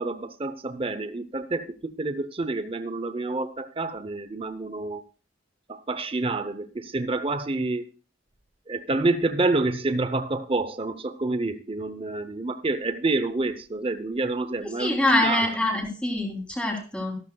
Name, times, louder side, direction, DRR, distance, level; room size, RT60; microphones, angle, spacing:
voice 1, 0.0-5.0 5.7-7.9 8.7-15.5, right 2 dB, 30° right, 11 dB, 0.7 m, -28 dB
voice 2, 14.6-17.2, left 1 dB, 5° left, 0 dB, 3.2 m, -25 dB
14.0 x 13.5 x 2.3 m, 0.36 s
head